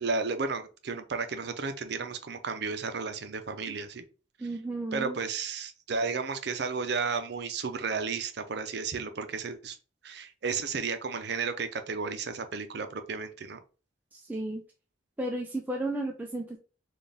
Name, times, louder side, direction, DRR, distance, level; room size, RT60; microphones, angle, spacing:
voice 1, 0.0-4.0 4.9-9.8 10.0-13.6, right 4 dB, 65° right, 8 dB, 0.6 m, -33 dB
voice 2, 4.4-5.2 14.1-14.6 15.2-16.6, right 1 dB, 10° right, 0 dB, 0.4 m, -33 dB
4.2 x 2.4 x 3.4 m, 0.35 s
head